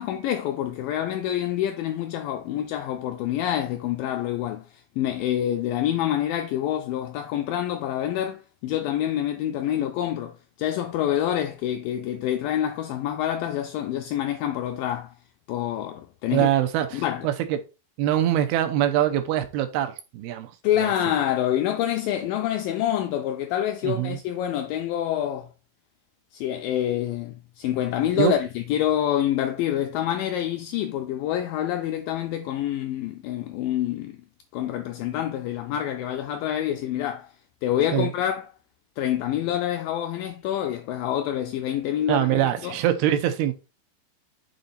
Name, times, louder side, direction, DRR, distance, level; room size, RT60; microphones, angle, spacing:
voice 1, 0.0-15.1 15.5-16.5 16.9-17.3 20.6-25.5 26.3-34.2 34.5-37.3 37.6-38.5 39.0-42.8, left 11 dB, 85° left, 2.0 m, -27 dB
voice 2, 16.3-17.6 18.0-20.5 20.8-21.1 23.8-24.2 28.2-28.3 37.9-38.1 42.1-43.5, right 11 dB, 85° right, 2.7 m, -24 dB
6.7 x 3.9 x 4.1 m
omnidirectional pair, 4.5 m